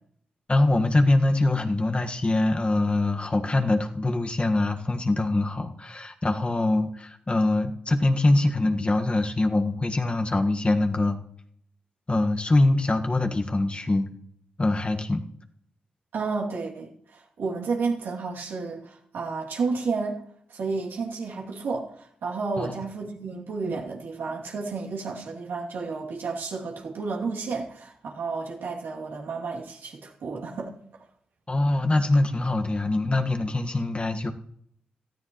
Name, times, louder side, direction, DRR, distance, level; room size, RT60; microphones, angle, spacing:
voice 1, 0.5-11.2 12.1-14.1 14.6-15.2 22.6-22.8 31.5-34.3, left 2 dB, 35° left, 5 dB, 1.6 m, -23 dB
voice 2, 16.1-20.2 20.5-30.7, right 4 dB, 75° right, -2 dB, 2.7 m, -31 dB
18.5 x 13.5 x 3.1 m, 0.68 s
supercardioid pair, 40°, 4 cm